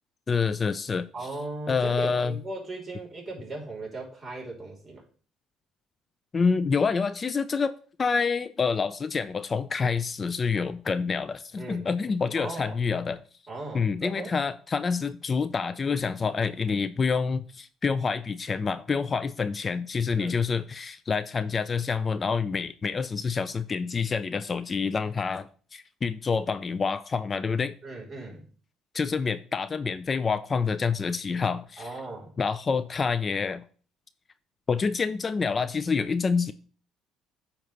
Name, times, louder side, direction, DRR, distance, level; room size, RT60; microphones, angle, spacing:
voice 1, 0.3-1.1 1.7-2.4 6.3-7.7 8.0-13.2 13.7-27.7 28.9-31.8 32.4-33.6 34.7-36.5, left 5 dB, 35° left, 0.4 m, -27 dB
voice 2, 1.1-5.0 11.6-11.9 12.3-12.8 13.5-14.3 20.1-20.4 27.8-28.5 31.8-32.3, right 2 dB, 30° right, 3.1 m, -37 dB
8.9 x 3.0 x 6.5 m
supercardioid pair, 90°, 0 cm